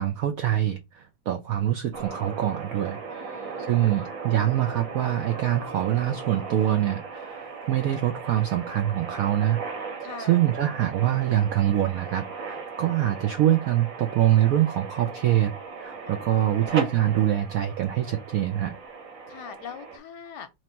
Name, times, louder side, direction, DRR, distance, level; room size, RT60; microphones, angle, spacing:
voice 1, 0.0-3.0 3.3-9.6 10.2-18.7, right 12 dB, 75° right, 0.8 m, -24 dB
sound 1, 1.9-20.0, right 5 dB, 50° right, 1.4 m, -37 dB
voice 2, 3.1-4.1 10.0-10.4 16.0-16.8 19.3-20.5, left 7 dB, 70° left, 1.1 m, -43 dB
3.2 x 2.9 x 4.3 m
omnidirectional pair, 2.0 m